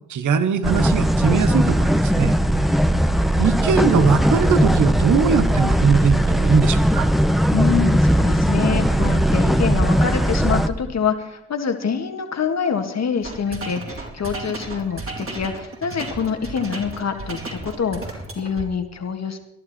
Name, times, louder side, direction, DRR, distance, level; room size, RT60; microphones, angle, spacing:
voice 1, 0.1-2.4 3.4-7.1, right 6 dB, 70° right, 11 dB, 1.3 m, -20 dB
sound 1, 0.6-10.7, equal, ahead, 1.1 m, -18 dB
voice 2, 7.5-19.4, left 6 dB, 60° left, 6 dB, 2.0 m, -25 dB
sound 2, 13.2-18.6, right 2 dB, 45° right, 4.4 m, -34 dB
20.0 x 11.5 x 4.4 m, 0.82 s
supercardioid pair, 50°, 31 cm